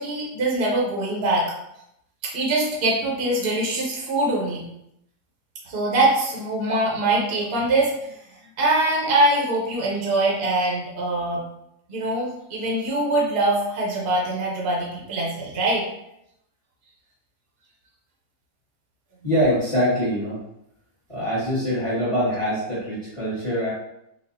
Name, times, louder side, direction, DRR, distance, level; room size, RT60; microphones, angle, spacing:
voice 1, 0.0-1.5 2.2-4.6 5.7-8.1 8.6-11.4 11.9-15.8, right 2 dB, 50° right, -3 dB, 0.9 m, -23 dB
voice 2, 19.2-20.4 21.1-23.7, equal, 20° left, -9 dB, 1.3 m, -23 dB
4.1 x 2.5 x 2.6 m, 0.81 s
omnidirectional pair, 1.5 m